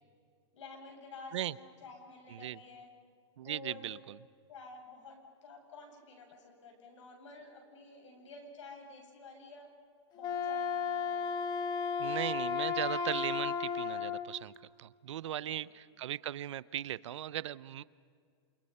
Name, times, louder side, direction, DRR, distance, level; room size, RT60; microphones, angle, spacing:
voice 1, 0.5-2.9 3.4-4.0 4.5-9.7 10.1-11.3 15.2-15.7, left 4 dB, 80° left, 3 dB, 7.9 m, -51 dB
voice 2, 3.4-4.2 12.0-14.5 14.8-17.8, right 12 dB, 75° right, 19 dB, 0.7 m, -38 dB
Wind instrument woodwind instrument, 10.1-14.3, left 6 dB, 25° left, 1.7 m, -34 dB
29.0 x 28.5 x 5.7 m, 2.2 s
hypercardioid pair, 145°, 15 cm